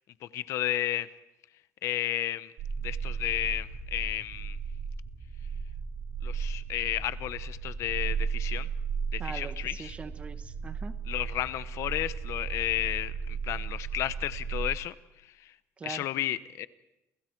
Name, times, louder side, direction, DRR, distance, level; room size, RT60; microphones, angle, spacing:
voice 1, 0.3-1.1 1.8-2.5 2.8-4.6 6.2-8.7 9.1-9.9 11.1-14.9 15.4-15.5 15.8-16.7, left 13 dB, 65° left, 15 dB, 0.9 m, -32 dB
sound 1, 2.6-14.7, right 5 dB, 75° right, 3.5 m, -35 dB
voice 2, 9.2-11.0 15.8-16.1, right 5 dB, 20° right, 11 dB, 1.2 m, -42 dB
29.5 x 29.0 x 4.6 m, 0.94 s
cardioid pair, 165°, 5 cm